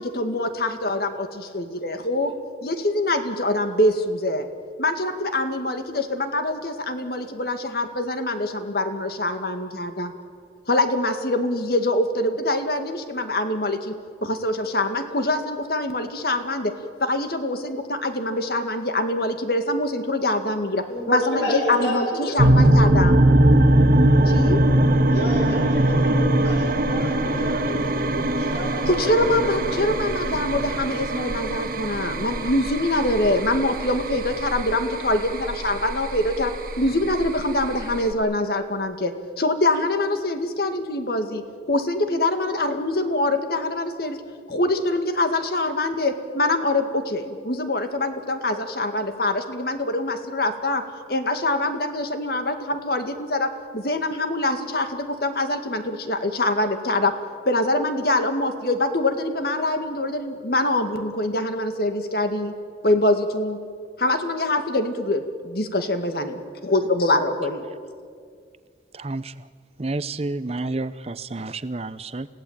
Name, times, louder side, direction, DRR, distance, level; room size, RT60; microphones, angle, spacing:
voice 1, 0.0-2.3 2.6-4.5 4.8-10.1 10.7-16.7 17.0-23.2 24.3-24.6 28.9-44.2 44.5-50.8 51.1-57.1 57.5-62.5 62.8-63.6 64.0-66.3 66.6-67.6, left 1 dB, 55° left, 7 dB, 2.0 m, -24 dB
voice 2, 20.9-22.5 25.1-29.3 29.6-29.7, equal, 70° left, -1 dB, 6.8 m, -30 dB
sound 1, 22.4-38.1, right 1 dB, 55° right, 1.6 m, -21 dB
voice 3, 68.9-69.3 69.8-72.3, right 2 dB, 35° right, 15 dB, 0.7 m, -30 dB
29.5 x 17.0 x 8.8 m, 2.1 s
head